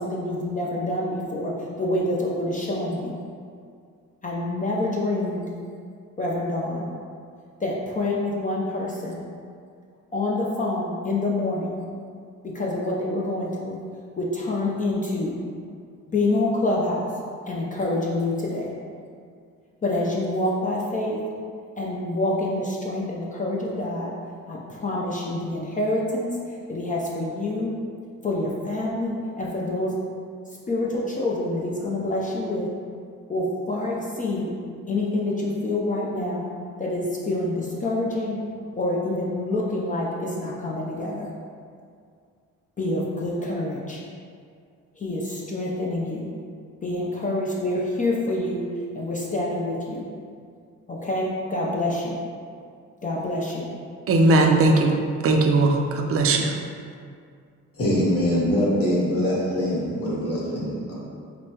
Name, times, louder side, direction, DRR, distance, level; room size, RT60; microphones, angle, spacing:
voice 1, 0.0-1.5 1.8-3.2 4.2-5.5 6.2-6.9 7.6-9.2 10.1-11.8 12.5-13.8 14.2-15.3 16.1-17.1 17.5-18.7 19.8-21.2 21.8-24.1 24.5-26.3 26.7-27.7 28.2-29.9 30.7-32.7 33.3-34.5 34.9-36.4 36.8-38.4 38.8-41.3 42.8-44.0 45.0-46.3 46.8-48.6 48.9-50.0 50.9-52.2 53.0-53.7, left 2 dB, 25° left, -4 dB, 0.5 m, -26 dB
voice 2, 54.1-54.9 55.2-56.6, right 2 dB, 50° right, 2 dB, 0.5 m, -18 dB
voice 3, 57.8-60.9, equal, 50° left, -6 dB, 1.3 m, -23 dB
5.2 x 2.1 x 2.8 m, 2.2 s
cardioid pair, 90°, 30 cm